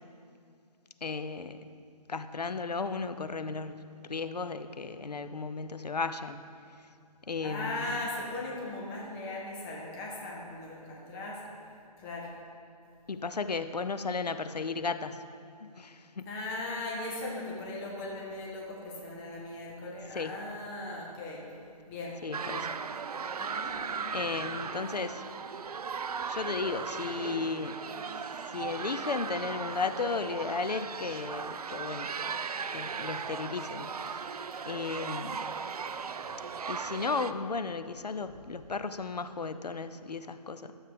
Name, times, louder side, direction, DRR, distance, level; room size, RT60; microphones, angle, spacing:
voice 1, 1.0-1.6 2.1-6.5 7.3-8.0 13.1-15.2 15.6-16.3 20.1-20.3 22.2-22.7 24.1-25.2 26.3-27.8 28.5-32.1 32.7-34.3 34.7-35.5 36.7-40.7, left 4 dB, 85° left, 10 dB, 0.5 m, -35 dB
voice 2, 7.4-11.4 12.0-12.3 16.3-21.5 21.9-22.7 23.4-24.2, left 2 dB, 5° left, -3 dB, 0.3 m, -38 dB
sound 1, 22.3-37.3, right 6 dB, 70° right, 0.4 m, -37 dB
11.5 x 7.1 x 3.4 m, 2.4 s
figure-of-eight pair, 140°, 20 cm